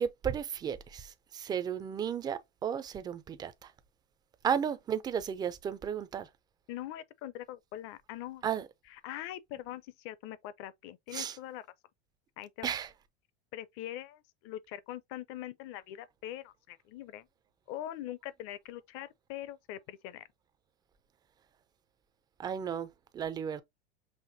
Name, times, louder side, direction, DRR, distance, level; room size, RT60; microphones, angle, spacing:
voice 1, 0.0-3.7 4.4-6.3 8.4-8.7 11.1-11.4 12.6-12.9 22.4-22.9 23.1-23.6, right 8 dB, 15° right, 0.3 m, -34 dB
voice 2, 6.7-8.4 8.9-11.7 12.4-12.7 13.5-17.3 17.7-20.3, left 13 dB, 40° left, 0.5 m, -43 dB
5.7 x 2.5 x 2.6 m
supercardioid pair, 130°, 32 cm